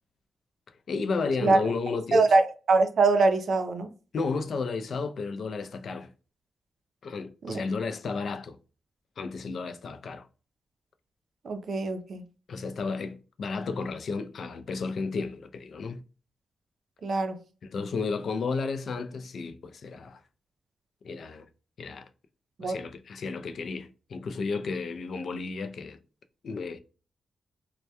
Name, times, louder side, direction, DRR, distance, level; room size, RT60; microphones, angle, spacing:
voice 1, 0.9-2.3 4.1-6.1 7.0-8.6 9.2-10.3 12.5-16.0 17.6-20.2 21.0-21.5 21.8-22.1 22.6-26.0 26.4-26.8, left 4 dB, 70° left, 0.3 m, -33 dB
voice 2, 2.1-3.9 7.4-7.6 11.4-12.2 17.0-17.4 22.6-22.8, right 3 dB, 65° right, 0.4 m, -23 dB
2.1 x 2.1 x 2.7 m
cardioid pair, 85°, 0 cm